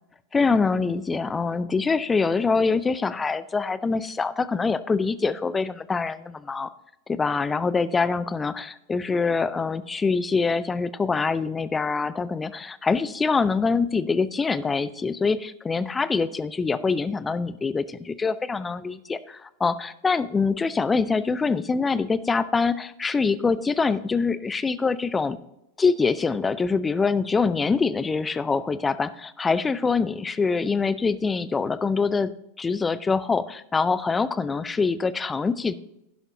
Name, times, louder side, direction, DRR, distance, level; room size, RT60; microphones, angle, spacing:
voice 1, 0.3-6.7 7.1-25.4 25.8-32.3 32.6-35.7, left 4 dB, 15° left, 16 dB, 0.5 m, -24 dB
11.5 x 11.0 x 2.9 m, 0.85 s
figure-of-eight pair, 90°, 0 cm